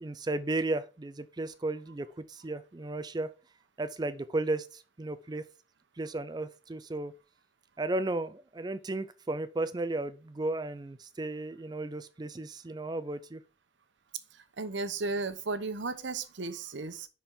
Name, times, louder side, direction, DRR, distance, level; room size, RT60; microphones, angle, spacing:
voice 1, 0.0-3.3 3.8-5.4 6.0-7.1 7.8-13.4, right 2 dB, 20° right, 0.4 m, -34 dB
voice 2, 14.3-17.1, right 3 dB, 80° right, 0.9 m, -35 dB
10.0 x 4.3 x 3.7 m
head